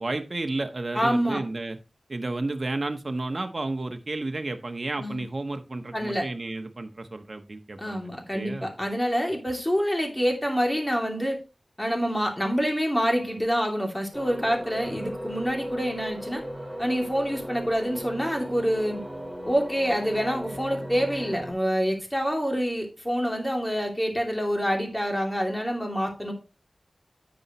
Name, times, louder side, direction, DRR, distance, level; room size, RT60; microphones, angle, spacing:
voice 1, 0.0-1.8 2.1-8.7, right 2 dB, 50° right, 6 dB, 1.1 m, -32 dB
voice 2, 0.9-1.4 5.0-5.2 5.9-6.2 7.8-11.4 11.8-16.4 16.8-19.0 19.4-26.3, equal, 15° left, 2 dB, 2.8 m, -26 dB
sound 1, 14.1-21.5, equal, 10° right, 5.1 m, -37 dB
10.0 x 6.9 x 3.0 m, 0.29 s
wide cardioid pair, 75°, 0 cm